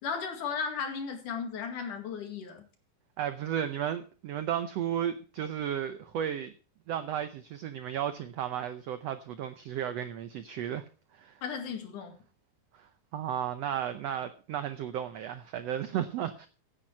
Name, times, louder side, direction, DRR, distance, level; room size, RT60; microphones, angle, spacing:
voice 1, 0.0-2.7 11.4-12.2, left 6 dB, 70° left, 3.5 m, -35 dB
voice 2, 3.2-6.5 6.9-10.8 11.1-11.4 12.7-16.5, right 10 dB, 80° right, 1.4 m, -34 dB
16.0 x 8.9 x 4.5 m
omnidirectional pair, 3.9 m